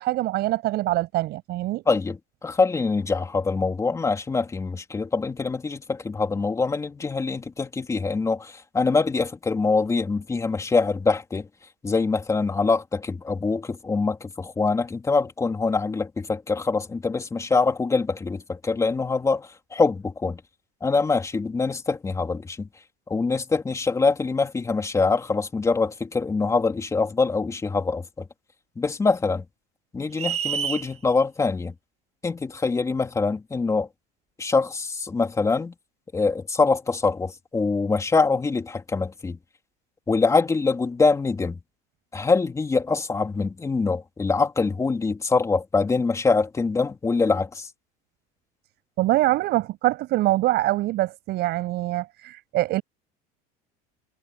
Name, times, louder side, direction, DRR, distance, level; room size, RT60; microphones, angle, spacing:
voice 1, 0.0-1.8 49.0-52.8, right 16 dB, 55° right, 7.1 m, -24 dB
voice 2, 1.9-11.5 11.8-20.4 20.8-22.7 23.1-28.3 28.8-29.4 29.9-31.7 32.2-33.9 34.4-35.7 36.1-39.4 40.1-41.6 42.1-47.7, left 4 dB, 15° left, 3.0 m, -24 dB
sound 1, 30.2-30.9, right 8 dB, 30° right, 1.5 m, -27 dB
cardioid pair, 145°, 21 cm